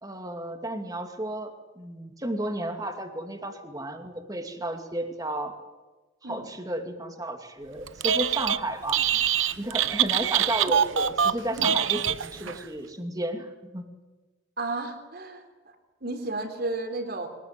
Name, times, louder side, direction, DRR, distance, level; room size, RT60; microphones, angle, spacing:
voice 1, 0.0-5.6 6.2-9.3 9.6-13.8, right 1 dB, 20° right, 5 dB, 2.6 m, -33 dB
Telephone, 7.9-8.6 8.9-12.6, right 9 dB, 80° right, 0.8 m, -24 dB
voice 2, 14.6-15.4 16.0-17.3, right 2 dB, 50° right, 7 dB, 3.7 m, -32 dB
23.0 x 19.5 x 9.8 m, 1.2 s
head